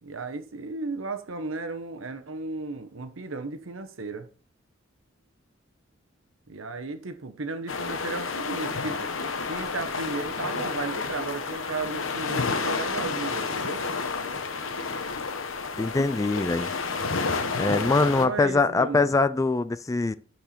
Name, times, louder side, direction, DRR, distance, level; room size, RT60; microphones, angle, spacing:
voice 1, 0.0-4.3 6.5-9.1 9.5-13.8 17.4-19.2, right 3 dB, 75° right, 1.1 m, -35 dB
sound 1, 7.7-18.3, left 4 dB, 70° left, 1.0 m, -30 dB
voice 2, 15.8-16.7 17.6-20.1, left 3 dB, 15° left, 0.3 m, -23 dB
10.5 x 4.6 x 4.4 m
head